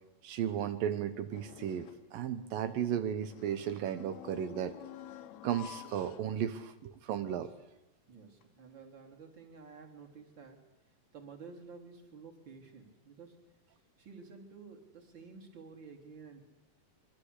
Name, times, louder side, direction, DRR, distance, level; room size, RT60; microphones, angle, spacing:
voice 1, 0.2-4.8 5.4-7.5, right 9 dB, 85° right, 10 dB, 2.8 m, -35 dB
sound 1, 1.3-2.1 3.2-6.8 7.2-7.3 8.4-8.5, left 10 dB, 65° left, 2.2 m, -50 dB
voice 2, 8.1-10.6 11.1-13.4 14.0-16.4, right 5 dB, 35° right, 2 dB, 4.0 m, -51 dB
25.5 x 24.0 x 8.2 m, 0.87 s
omnidirectional pair, 3.9 m